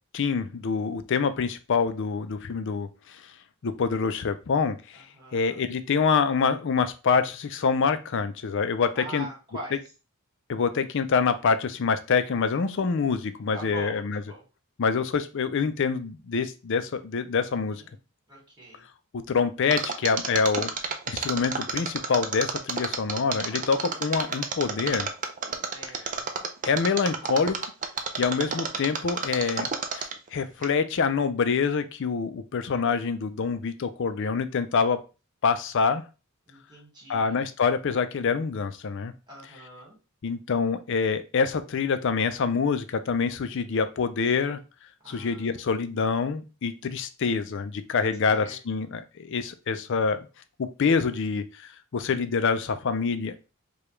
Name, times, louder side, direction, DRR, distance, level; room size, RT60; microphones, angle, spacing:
voice 1, 0.1-3.2 3.6-5.0 5.3-9.3 10.5-14.2 14.8-17.8 19.1-20.7 21.1-25.1 26.6-27.6 28.2-35.0 35.4-36.0 37.1-39.1 40.2-44.6 45.1-50.3 50.6-53.5, left 5 dB, 60° left, 11 dB, 0.4 m, -26 dB
voice 2, 5.0-5.6 8.9-9.8 13.5-14.4 17.7-18.0 18.3-18.8 23.5-24.1 25.6-26.3 36.5-37.4 39.3-40.0 45.0-45.6 48.2-48.6, right 1 dB, 20° right, -3 dB, 1.9 m, -43 dB
Mechanisms, 19.7-30.3 30.6-30.7, right 5 dB, 35° right, 0.5 m, -30 dB
4.9 x 2.3 x 3.1 m, 0.31 s
head